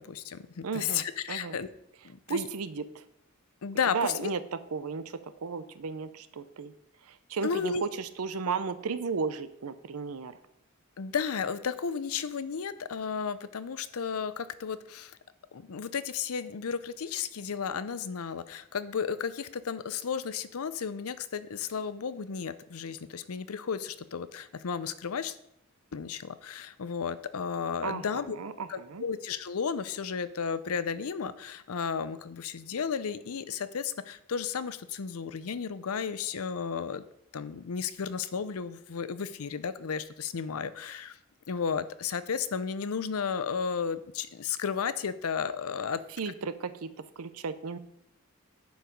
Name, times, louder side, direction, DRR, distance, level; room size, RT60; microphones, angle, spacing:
voice 1, 0.0-1.7 2.0-2.5 3.6-4.3 7.4-7.8 11.0-15.2 15.5-25.4 25.9-28.4 28.7-37.0 37.3-41.2 41.5-46.0, left 6 dB, 80° left, 14 dB, 0.6 m, -33 dB
voice 2, 0.6-1.0 1.3-1.6 2.3-3.0 3.9-4.4 4.7-6.7 7.1-10.3 27.8-29.0 46.2-47.8, right 5 dB, 90° right, 13 dB, 0.6 m, -34 dB
10.5 x 4.7 x 5.2 m, 0.77 s
head